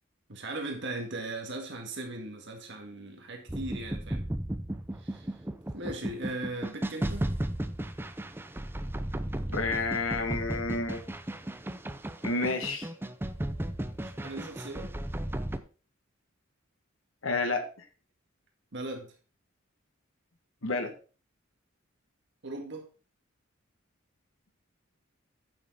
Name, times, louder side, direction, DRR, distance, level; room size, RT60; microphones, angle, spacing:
voice 1, 0.3-4.2 5.0-5.4 5.7-7.3 13.9-14.9 18.7-19.1 22.4-22.8, right 2 dB, 65° right, 2 dB, 1.8 m, -38 dB
sound 1, 3.5-15.6, right 1 dB, 10° right, 0.5 m, -35 dB
voice 2, 9.5-11.0 12.2-12.9 17.2-17.7 20.6-20.9, left 3 dB, 85° left, 6 dB, 1.4 m, -30 dB
8.7 x 6.6 x 4.1 m, 0.36 s
head